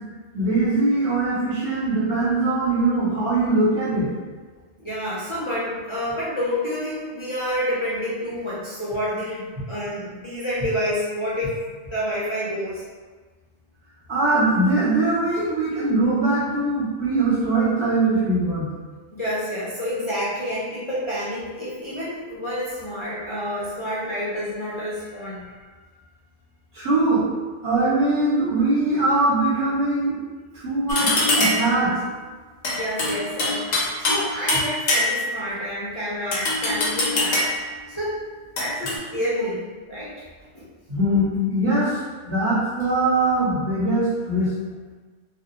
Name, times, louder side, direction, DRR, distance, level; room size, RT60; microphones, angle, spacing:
voice 1, 0.3-4.1 14.1-18.7 26.7-27.2 27.6-30.2 30.5-31.1 31.4-31.9 40.9-42.0 42.2-44.5, right 2 dB, 85° right, -11 dB, 1.7 m, -21 dB
voice 2, 4.8-11.6 11.9-12.9 19.1-25.4 32.7-37.5 37.9-38.2 38.6-40.1 40.5-40.7, equal, 40° left, -9 dB, 0.5 m, -29 dB
sound 1, 30.9-31.7 32.6-34.2 34.5-35.4 36.3-37.6 38.6-39.0, left 2 dB, 85° left, 1.0 m, -22 dB
3.3 x 2.3 x 2.7 m, 1.4 s
omnidirectional pair, 1.1 m